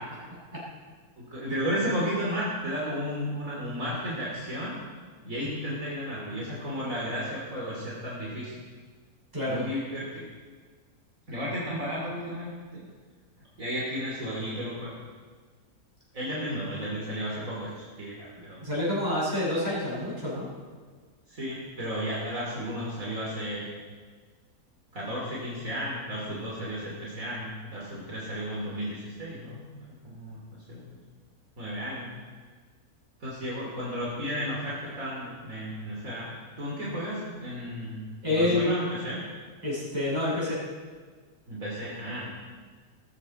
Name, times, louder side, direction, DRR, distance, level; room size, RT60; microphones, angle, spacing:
voice 1, 1.2-4.8 5.2-8.5 9.4-10.3 11.3-12.8 13.6-14.9 16.1-18.6 21.3-23.8 24.9-29.6 30.0-31.0 31.6-32.1 33.2-36.3 36.6-39.2 41.5-42.3, equal, 60° right, -5 dB, 3.3 m, -33 dB
voice 2, 18.6-20.5 38.2-38.7 39.6-40.6, left 1 dB, 25° right, -8 dB, 6.7 m, -27 dB
20.5 x 14.0 x 4.2 m, 1.5 s
omnidirectional pair, 1.6 m